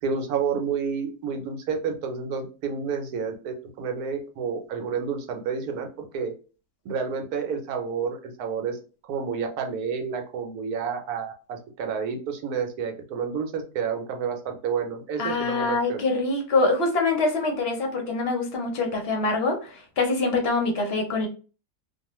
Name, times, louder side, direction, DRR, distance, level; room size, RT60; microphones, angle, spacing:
voice 1, 0.0-6.3 6.8-8.8 9.1-16.0, right 6 dB, 75° right, 4 dB, 1.1 m, -30 dB
voice 2, 15.2-21.3, left 3 dB, 55° left, 2 dB, 0.7 m, -25 dB
2.5 x 2.3 x 2.9 m, 0.35 s
omnidirectional pair, 1.6 m